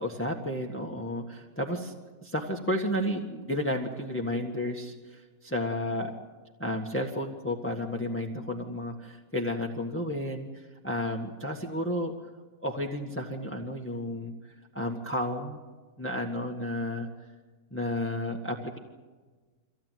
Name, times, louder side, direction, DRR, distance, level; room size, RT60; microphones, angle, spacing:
voice 1, 0.0-1.9 2.2-6.1 6.6-12.1 12.6-14.3 14.7-15.6 16.0-17.1 17.7-18.8, left 1 dB, 10° left, 1 dB, 1.6 m, -32 dB
25.0 x 16.5 x 9.4 m, 1.4 s
omnidirectional pair, 1.6 m